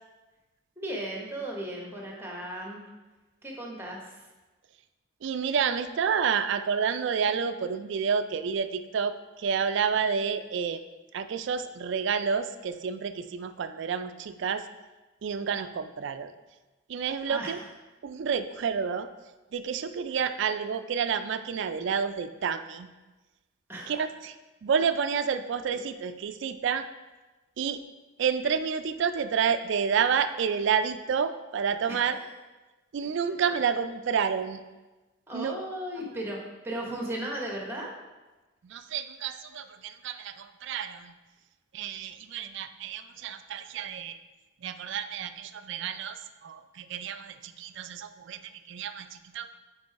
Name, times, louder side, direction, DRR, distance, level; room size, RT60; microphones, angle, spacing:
voice 1, 0.8-2.8 3.4-4.3 17.3-17.6 23.7-24.0 25.7-25.8 31.9-32.2 35.3-37.9, right 1 dB, 10° right, -1 dB, 1.0 m, -36 dB
voice 2, 5.2-10.8 11.1-14.6 15.2-16.3 16.9-17.6 18.0-19.1 19.5-22.9 23.9-24.3 24.6-26.9 27.6-27.8 28.2-32.2 32.9-34.6 35.3-35.6 38.6-41.1 41.7-44.2 44.6-49.5, right 6 dB, 60° right, 10 dB, 0.3 m, -29 dB
5.2 x 4.7 x 4.6 m, 1.1 s
head